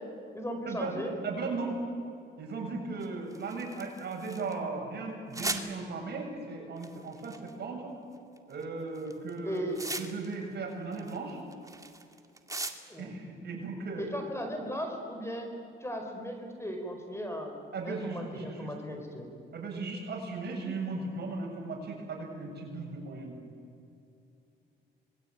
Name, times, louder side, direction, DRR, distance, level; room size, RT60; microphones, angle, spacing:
voice 1, 0.3-1.2 9.4-9.9 12.9-13.1 14.0-15.5 15.8-17.6 17.8-19.3, equal, 15° left, 4 dB, 5.0 m, -37 dB
voice 2, 1.2-1.8 2.4-7.9 8.5-11.4 13.0-14.1 17.7-18.7 19.5-23.4, right 3 dB, 55° right, 0 dB, 7.5 m, -37 dB
sound 1, 3.0-4.5 5.3-5.7 6.8-7.5 8.4-8.6 9.0-10.4 10.7-13.0, right 2 dB, 15° right, 2.2 m, -38 dB
26.0 x 21.5 x 9.0 m, 2.6 s
cardioid pair, 90°, 20 cm